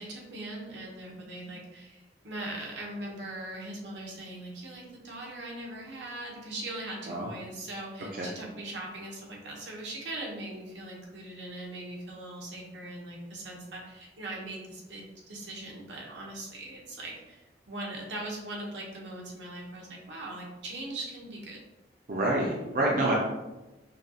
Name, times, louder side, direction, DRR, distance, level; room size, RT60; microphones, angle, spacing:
voice 1, 0.0-21.6, right 1 dB, 80° right, -2 dB, 0.9 m, -40 dB
voice 2, 22.1-23.1, right 1 dB, 50° right, -3 dB, 0.5 m, -27 dB
5.1 x 2.3 x 2.8 m, 1.1 s
head